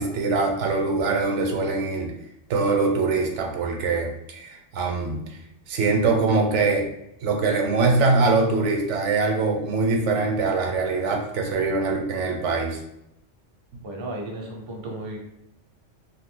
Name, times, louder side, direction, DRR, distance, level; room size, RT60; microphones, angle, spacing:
voice 1, 0.0-2.1 2.5-5.2 5.7-6.8 7.2-12.8, right 3 dB, 75° right, 2 dB, 0.9 m, -23 dB
voice 2, 13.8-15.2, right 1 dB, 35° right, 0 dB, 0.4 m, -34 dB
2.6 x 2.4 x 3.7 m, 0.83 s
omnidirectional pair, 1.3 m